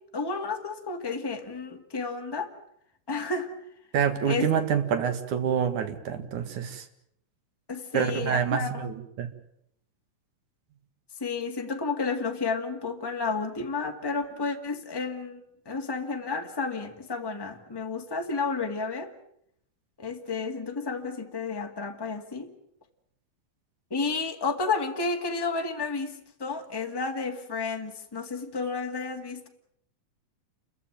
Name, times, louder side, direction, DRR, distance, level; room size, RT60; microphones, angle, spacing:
voice 1, 0.1-2.5 3.1-3.5 4.2-4.5 7.7-8.8 11.2-19.1 20.0-22.5 23.9-29.5, left 4 dB, 10° left, 3 dB, 1.6 m, -31 dB
voice 2, 3.9-6.8 7.9-9.3, right 8 dB, 70° right, 9 dB, 3.3 m, -27 dB
29.0 x 15.0 x 9.2 m, 0.73 s
omnidirectional pair, 3.6 m